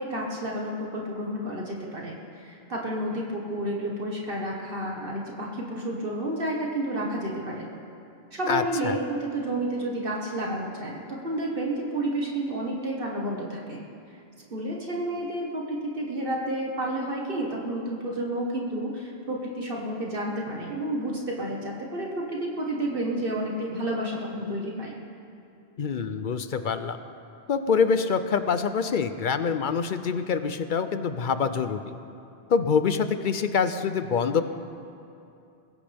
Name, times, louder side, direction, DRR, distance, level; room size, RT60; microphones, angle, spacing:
voice 1, 0.0-7.7 8.3-13.8 14.5-25.0, right 1 dB, 60° right, -2 dB, 1.7 m, -30 dB
voice 2, 8.5-8.9 25.8-27.0 27.5-31.9 32.5-34.4, left 6 dB, 55° left, 10 dB, 0.7 m, -25 dB
21.0 x 16.0 x 3.5 m, 2.6 s
omnidirectional pair, 1.0 m